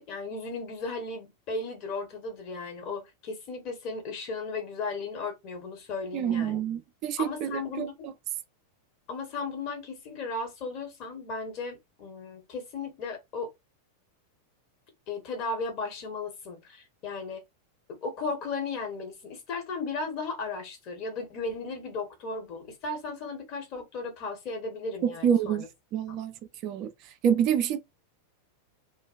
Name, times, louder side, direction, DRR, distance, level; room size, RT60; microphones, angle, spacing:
voice 1, 0.0-6.6 7.2-7.9 9.1-13.5 15.1-17.4 17.9-25.7 26.1-26.2, left 3 dB, 40° left, 1.0 m, -35 dB
voice 2, 6.1-8.1 25.0-25.6 25.9-26.3 26.6-26.9 27.2-27.8, right 8 dB, 40° right, 0.4 m, -27 dB
2.4 x 2.1 x 2.5 m
figure-of-eight pair, 90°, 0 cm